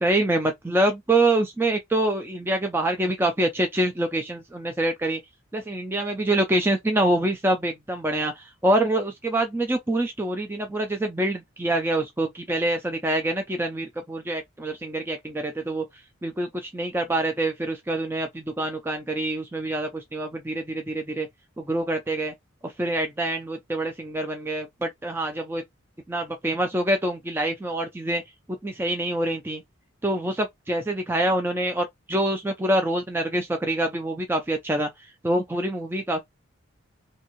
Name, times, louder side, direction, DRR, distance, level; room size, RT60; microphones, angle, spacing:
voice 1, 0.0-5.2 5.5-15.8 16.2-21.3 21.6-22.3 22.6-25.6 26.1-28.2 28.5-29.6 30.0-34.9 35.2-36.2, right 1 dB, 10° right, 0.3 m, -25 dB
2.8 x 2.7 x 2.5 m
head